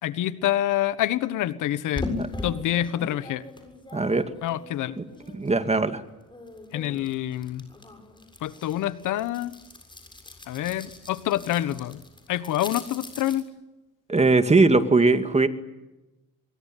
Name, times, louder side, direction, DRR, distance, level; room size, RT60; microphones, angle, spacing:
voice 1, 0.0-2.1 2.4-3.4 4.4-5.0 6.7-7.7 8.4-9.5 10.5-12.0 12.3-13.5, left 13 dB, 85° left, 15 dB, 1.4 m, -27 dB
sound 1, 2.0-5.9 6.2-13.4, left 2 dB, 15° left, 7.2 m, -40 dB
voice 2, 3.9-4.3 5.0-5.1 5.3-6.0 14.1-15.5, right 3 dB, 20° right, 10 dB, 2.4 m, -20 dB
24.5 x 22.5 x 9.3 m, 1.0 s
cardioid pair, 90°, 30 cm